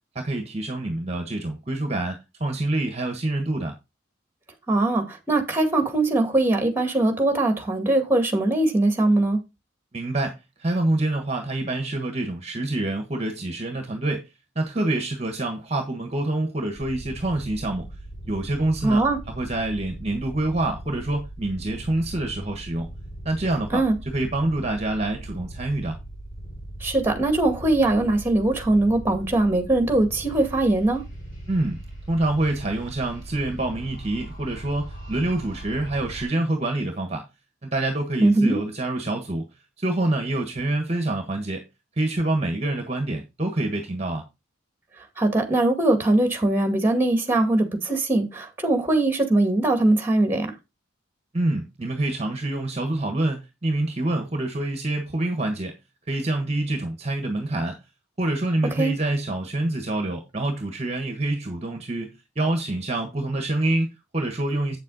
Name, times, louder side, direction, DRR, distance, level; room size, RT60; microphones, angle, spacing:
voice 1, 0.1-3.8 9.9-14.3 14.5-17.9 18.3-19.0 19.3-22.9 23.2-23.8 24.1-26.0 31.5-31.8 32.1-37.2 37.6-39.5 39.8-41.6 42.0-44.2 51.3-55.7 56.1-57.8 58.2-64.8, right 2 dB, 30° right, 1.4 m, -26 dB
voice 2, 4.7-9.4 18.8-19.2 23.7-24.0 26.8-31.0 38.2-38.6 45.2-50.5 58.8-58.9, right 2 dB, 10° right, 2.2 m, -21 dB
sound 1, 16.8-36.2, right 1 dB, 45° left, 6.3 m, -39 dB
8.4 x 7.5 x 4.1 m
head